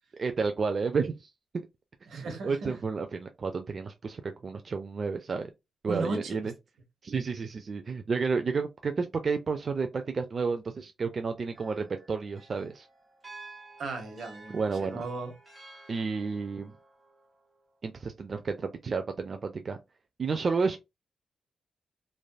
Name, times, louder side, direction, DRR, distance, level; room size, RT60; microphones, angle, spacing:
voice 1, 0.2-1.3 2.1-5.5 5.8-6.5 7.0-12.9 14.5-15.0 15.9-16.7 17.8-19.8 20.2-20.8, right 4 dB, 40° right, 0.3 m, -31 dB
voice 2, 2.1-2.8 5.9-6.5 13.8-15.3, right 3 dB, 70° right, 1.0 m, -36 dB
sound 1, 11.5-17.8, right 3 dB, 20° right, 1.1 m, -52 dB
3.2 x 2.6 x 2.2 m
wide cardioid pair, 135°, 0 cm